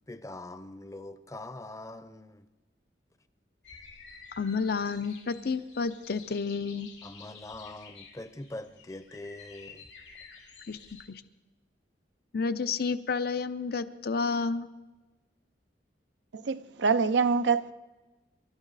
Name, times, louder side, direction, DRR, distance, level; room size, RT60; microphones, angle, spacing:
voice 1, 0.0-2.4 7.0-9.8, left 2 dB, 20° left, 0.7 m, -43 dB
sound 1, 3.6-11.0, left 5 dB, 90° left, 2.7 m, -51 dB
voice 2, 4.4-6.9 10.7-10.8 11.1-11.2 12.3-14.7, left 4 dB, 60° left, 0.7 m, -30 dB
voice 3, 16.3-17.7, right 5 dB, 80° right, 0.5 m, -25 dB
26.5 x 12.5 x 4.0 m
head